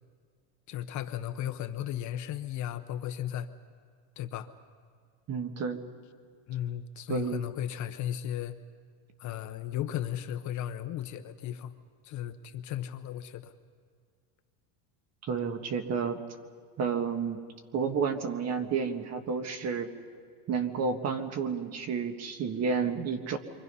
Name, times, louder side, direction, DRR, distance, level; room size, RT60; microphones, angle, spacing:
voice 1, 0.7-3.5 4.2-4.5 6.5-8.5 9.2-11.7 12.0-13.5, left 11 dB, 40° left, 9 dB, 1.0 m, -35 dB
voice 2, 5.3-5.8 7.1-7.4 15.2-16.2 16.8-17.4 17.7-19.9 20.5-23.4, right 5 dB, 35° right, 7 dB, 1.7 m, -30 dB
28.5 x 24.5 x 5.6 m, 2.1 s
cardioid pair, 150°, 43 cm